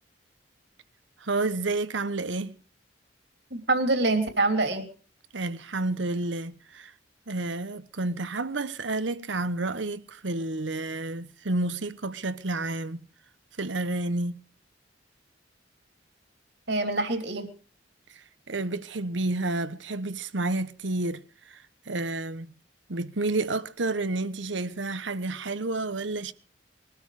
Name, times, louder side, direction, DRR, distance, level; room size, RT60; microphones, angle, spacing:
voice 1, 1.2-2.5 5.3-6.9 7.3-13.0 13.6-14.4 18.5-22.5 22.9-26.3, right 2 dB, 85° right, 1.1 m, -30 dB
voice 2, 3.5-4.9 16.7-17.5, right 2 dB, 65° right, 3.0 m, -25 dB
21.5 x 13.0 x 4.9 m
head